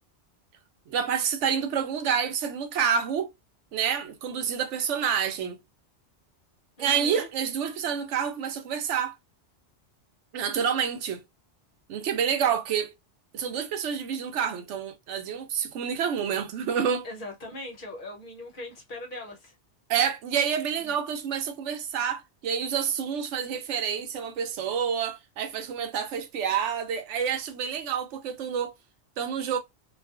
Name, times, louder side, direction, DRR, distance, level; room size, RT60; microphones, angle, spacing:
voice 1, 0.9-3.3 3.7-5.6 6.8-9.1 10.3-11.2 11.9-12.9 13.3-17.1 19.9-28.7 29.2-29.6, right 7 dB, 90° right, 0.9 m, -28 dB
voice 2, 6.8-7.3 17.0-19.5 20.8-20.9, left 1 dB, 50° left, 0.9 m, -40 dB
2.4 x 2.3 x 2.2 m
omnidirectional pair, 1.2 m